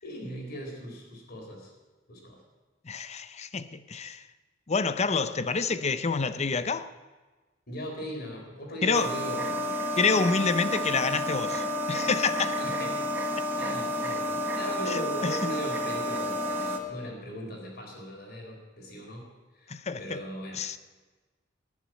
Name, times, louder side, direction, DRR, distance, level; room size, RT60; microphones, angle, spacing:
voice 1, 0.0-1.7 2.1-2.4 7.7-9.4 12.6-13.0 13.6-19.3 19.5-20.6, equal, 50° left, 4.0 m, -39 dB
voice 2, 2.8-4.3 4.7-6.9 8.8-9.1 10.0-12.6 14.9-15.5 19.7-20.2 20.5-20.8, left 4 dB, 35° left, 0.6 m, -28 dB
sound 1, 8.9-16.8, equal, 10° right, 1.5 m, -30 dB
18.5 x 7.3 x 9.0 m
head